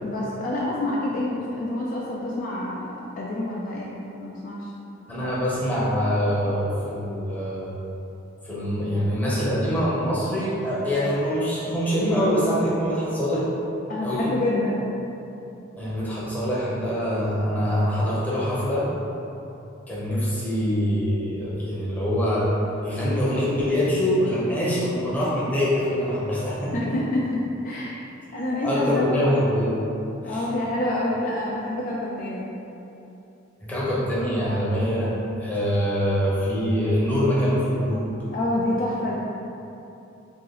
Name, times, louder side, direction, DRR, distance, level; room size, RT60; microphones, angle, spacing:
voice 1, 0.0-4.7 13.9-14.9 26.7-27.2 27.6-28.0 28.3-29.3 30.2-32.5 38.3-39.1, left 1 dB, 40° left, -5 dB, 0.3 m, -27 dB
voice 2, 5.1-7.7 8.4-13.5 14.0-14.3 15.8-18.9 19.9-22.5 22.8-26.9 28.6-29.8 30.2-30.4 33.6-35.1 35.4-38.1, equal, 10° left, -9 dB, 0.7 m, -24 dB
2.9 x 2.8 x 3.8 m, 2.9 s
head